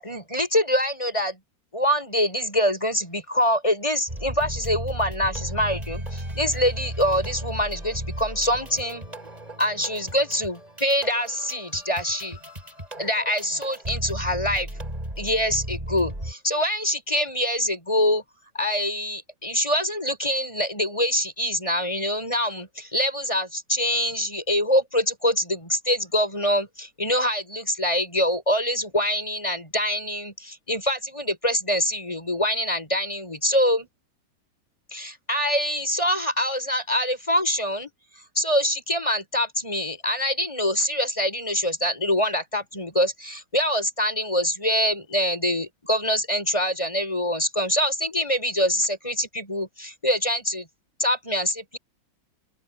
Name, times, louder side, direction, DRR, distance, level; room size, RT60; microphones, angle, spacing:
voice 1, 0.0-1.4 1.7-9.1 9.6-12.4 13.0-14.7 15.2-18.2 18.5-33.9 34.9-37.9 38.4-50.7 51.0-51.8, equal, 15° left, 5.6 m, -25 dB
sound 1, 4.1-16.3, right 1 dB, 20° right, 6.6 m, -35 dB
open air
omnidirectional pair, 1.9 m